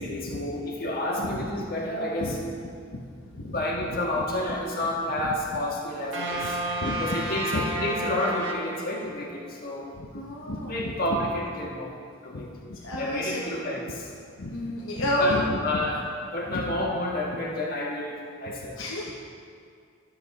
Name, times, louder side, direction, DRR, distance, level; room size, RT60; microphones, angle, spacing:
voice 1, 0.0-2.3 3.5-6.6 7.0-9.9 10.6-11.9 12.2-12.5 13.0-14.1 15.2-15.3 15.6-16.0 16.3-18.8, left 1 dB, 50° left, -3 dB, 1.7 m, -30 dB
voice 2, 3.3-3.6 3.9-4.6 5.2-5.6 6.3-6.5 6.8-7.0 7.5-7.6 9.9-11.3 12.3-12.4 12.7-13.6 14.4-15.8 16.5-16.7 18.4-19.2, left 1 dB, 85° left, -3 dB, 1.0 m, -32 dB
sound 1, 6.1-9.4, right 2 dB, 75° right, 1.2 m, -31 dB
12.5 x 7.7 x 4.1 m, 2.3 s
head